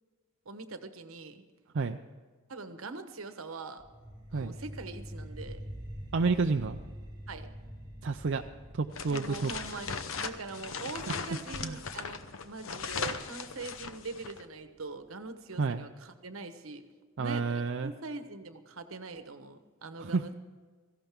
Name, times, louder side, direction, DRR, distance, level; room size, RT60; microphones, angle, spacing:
voice 1, 0.4-1.4 2.5-3.8 4.3-5.6 7.3-7.5 9.1-16.8 17.2-20.3, right 3 dB, 80° right, 9 dB, 1.2 m, -43 dB
sound 1, 3.8-14.8, equal, 20° right, 2.9 m, -47 dB
voice 2, 6.1-6.8 8.0-8.4 8.7-9.5 11.6-11.8 15.6-15.8 17.2-17.9 20.0-20.3, right 4 dB, 60° right, 5 dB, 0.5 m, -30 dB
sound 2, 8.9-14.4, left 5 dB, 70° left, 0.9 m, -38 dB
17.5 x 15.0 x 3.6 m, 1.5 s
head